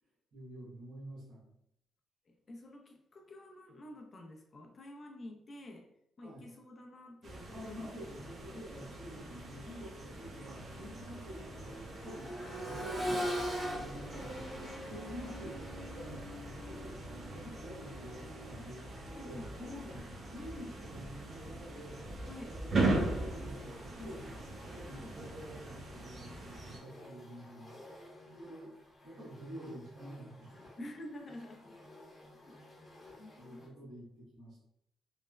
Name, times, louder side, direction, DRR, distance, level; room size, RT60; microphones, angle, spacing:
voice 1, 0.3-1.5 6.2-6.4 7.5-12.3 12.6-22.0 22.4-27.8 28.3-28.7 29.0-30.9 33.3-34.6, equal, 60° right, -8 dB, 1.2 m, -48 dB
voice 2, 2.3-5.9 6.2-7.9 8.2-8.7 12.4-12.6 12.9-13.1 19.1-19.5 22.3-22.6 24.9-25.2 30.8-31.8 32.2-32.8 33.2-33.8, left 1 dB, 40° left, 2 dB, 0.5 m, -50 dB
sound 1, 7.2-26.8, right 2 dB, 45° right, 0.6 m, -40 dB
Accelerating revving vroom, 9.4-9.5 10.0-19.9 21.6-21.7, equal, 20° right, 1.1 m, -42 dB
sound 2, 22.9-33.7, left 1 dB, 20° left, 0.9 m, -56 dB
3.2 x 2.0 x 2.2 m, 0.75 s
cardioid pair, 90°, 0 cm